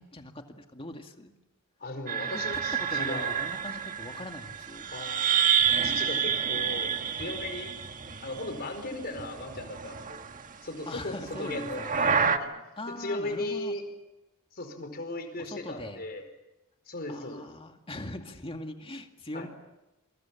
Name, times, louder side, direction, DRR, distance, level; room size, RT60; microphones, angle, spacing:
voice 1, 0.0-1.3 2.3-4.9 10.9-12.1 12.8-13.8 15.4-16.0 17.1-19.5, left 1 dB, 25° left, 5 dB, 2.2 m, -41 dB
voice 2, 1.8-3.4 4.9-5.5 5.8-6.9 7.2-7.7 8.2-10.2 10.6-11.8 12.4-12.5 13.0-13.8 14.5-16.2 16.9-17.5 19.3-19.5, left 2 dB, 45° left, 6 dB, 4.8 m, -37 dB
sound 1, 2.1-8.8 9.0-10.4 11.3-12.4, right 7 dB, 40° right, 1.6 m, -29 dB
28.0 x 24.0 x 7.2 m, 0.99 s
head